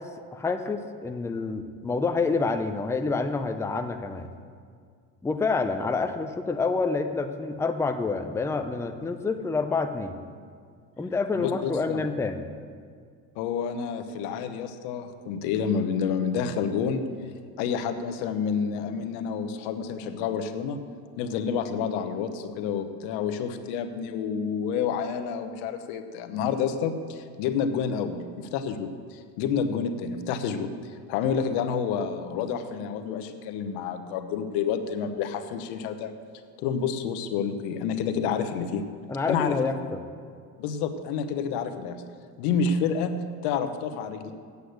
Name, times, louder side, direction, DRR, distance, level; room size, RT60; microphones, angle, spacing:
voice 1, 0.0-4.3 5.2-10.2 11.0-12.4 39.1-40.0, left 4 dB, 5° left, 6 dB, 0.5 m, -28 dB
voice 2, 11.3-12.0 13.4-17.0 17.6-20.8 21.2-30.7 31.1-36.1 36.6-38.8 39.3-39.6 40.6-42.0 42.4-44.3, left 6 dB, 80° left, 8 dB, 1.0 m, -29 dB
8.2 x 8.1 x 8.0 m, 2.1 s
supercardioid pair, 105°, 38 cm